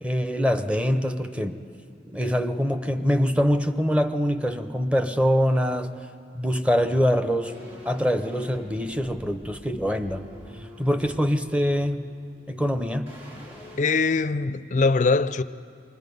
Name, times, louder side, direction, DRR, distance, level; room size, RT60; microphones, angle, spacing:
voice 1, 0.0-1.6 2.1-5.9 6.3-7.5 7.8-10.2 10.8-12.0 12.5-13.1, equal, 5° right, 0.7 m, -24 dB
sound 1, 7.5-12.7 13.1-13.8, left 1 dB, 35° right, 3.4 m, -45 dB
voice 2, 13.8-15.4, left 4 dB, 45° left, 0.4 m, -22 dB
25.0 x 21.0 x 5.4 m
head